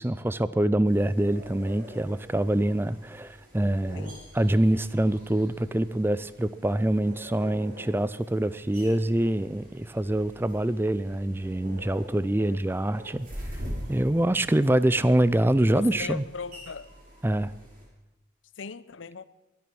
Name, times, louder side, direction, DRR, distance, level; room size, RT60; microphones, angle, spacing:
voice 1, 0.0-13.3 13.9-16.2 17.2-17.5, right 1 dB, 10° right, 0.4 m, -25 dB
sound 1, 0.8-17.8, equal, 45° right, 6.8 m, -45 dB
voice 2, 15.7-16.9 18.6-19.3, left 5 dB, 80° left, 0.7 m, -38 dB
22.5 x 9.4 x 6.1 m
head